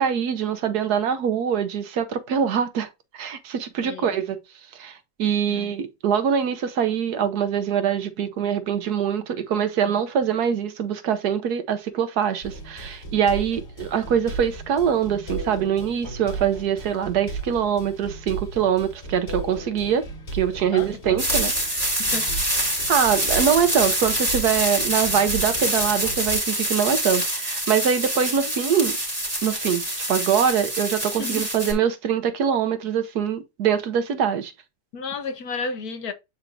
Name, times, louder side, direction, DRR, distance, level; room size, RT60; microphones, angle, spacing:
voice 1, 0.0-2.9 3.1-4.4 4.8-20.0 20.3-21.5 22.9-29.0 29.4-34.5, right 8 dB, 70° right, 1.3 m, -23 dB
voice 2, 3.8-4.2 5.4-5.7 20.7-22.3 31.2-31.4 34.9-36.1, left 4 dB, 65° left, 1.5 m, -33 dB
sound 1, 12.4-26.3, right 3 dB, 35° left, 3.3 m, -35 dB
sound 2, 21.2-31.7, right 1 dB, 10° right, 3.0 m, -25 dB
8.8 x 4.5 x 2.6 m
omnidirectional pair, 1.8 m